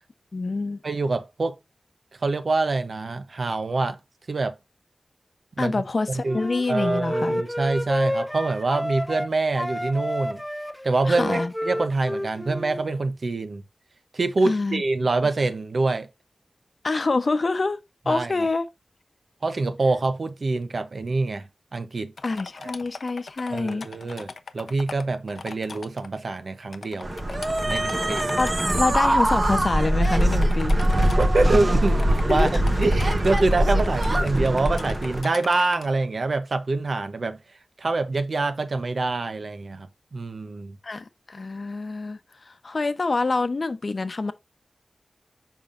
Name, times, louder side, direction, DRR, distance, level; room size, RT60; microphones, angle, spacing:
voice 1, 0.3-0.8 5.6-7.4 11.1-11.5 14.4-14.8 16.8-17.8 18.1-18.7 22.2-23.9 28.4-30.8 32.3-32.5 40.8-42.2 42.5-44.3, left 3 dB, 55° left, 0.8 m, -26 dB
voice 2, 0.8-1.6 2.2-4.0 4.3-4.6 5.6-5.8 6.1-6.4 6.7-10.4 10.8-13.6 14.1-16.1 18.1-18.3 19.4-22.1 22.6-22.7 23.5-27.1 27.7-28.4 31.2-32.5 32.8-37.4 37.8-40.8, right 3 dB, 65° right, 0.8 m, -25 dB
Wind instrument woodwind instrument, 6.2-9.3 9.6-12.9, equal, 5° left, 0.6 m, -29 dB
sound 1, 22.2-26.1 26.7-29.5 30.0-31.3 31.8-35.9, left 4 dB, 90° left, 0.6 m, -40 dB
sound 2, 27.0-35.2, right 1 dB, 40° right, 1.0 m, -22 dB
7.0 x 5.4 x 2.6 m
wide cardioid pair, 90°, 0 cm